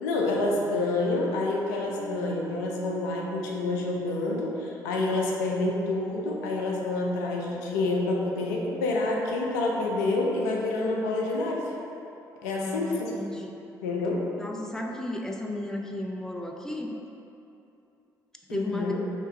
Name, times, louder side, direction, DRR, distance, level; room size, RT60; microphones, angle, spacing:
voice 1, 0.0-11.7 12.4-13.1 13.8-14.3 18.5-19.0, left 2 dB, 85° left, -1 dB, 0.5 m, -28 dB
Piano, 1.9-7.3, equal, 50° right, 0.5 m, -49 dB
voice 2, 12.5-13.6 14.4-16.9 18.5-18.9, left 1 dB, 5° left, 1 dB, 0.5 m, -34 dB
3.4 x 2.9 x 4.4 m, 2.8 s
hypercardioid pair, 50°, 9 cm